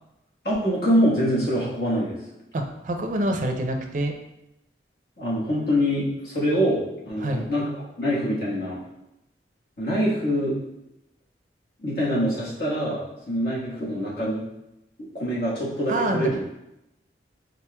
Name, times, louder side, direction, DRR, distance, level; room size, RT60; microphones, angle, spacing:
voice 1, 0.4-2.2 5.2-7.7 8.0-8.8 9.8-10.6 11.8-14.4 15.1-16.4, equal, 60° left, -7 dB, 1.3 m, -24 dB
voice 2, 2.5-4.1 7.2-7.5 15.9-16.3, right 1 dB, 45° right, 4 dB, 0.4 m, -26 dB
4.4 x 3.8 x 2.2 m, 0.88 s
head